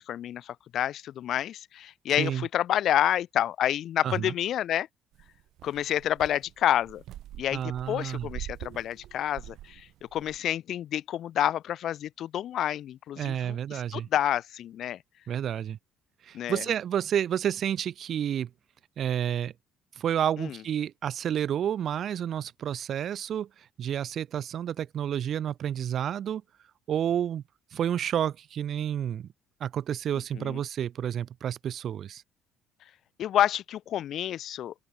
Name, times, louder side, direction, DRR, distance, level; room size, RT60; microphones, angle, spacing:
voice 1, 0.0-4.9 5.6-7.0 7.4-15.0 16.3-16.6 20.4-20.6 30.3-30.6 33.2-34.7, left 11 dB, 60° left, 2.7 m, -29 dB
voice 2, 4.0-4.3 7.5-8.3 13.2-14.1 15.3-15.8 16.2-18.5 19.0-19.5 20.0-26.4 26.9-27.4 27.7-29.3 29.6-32.2, right 9 dB, 50° right, 0.6 m, -30 dB
sound 1, 5.1-10.4, right 13 dB, 65° right, 7.0 m, -44 dB
open air
cardioid pair, 115°, 0 cm